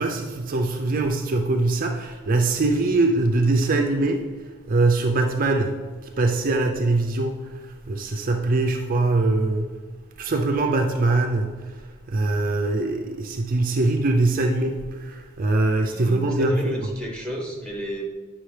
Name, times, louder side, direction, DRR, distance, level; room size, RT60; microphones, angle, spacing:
voice 1, 0.0-4.3 4.7-5.8 6.0-9.7 10.2-11.8 12.1-16.8, right 2 dB, 40° right, 3 dB, 0.5 m, -22 dB
voice 2, 15.9-18.1, right 1 dB, 5° left, -2 dB, 1.1 m, -32 dB
9.1 x 6.0 x 3.3 m, 1.4 s
head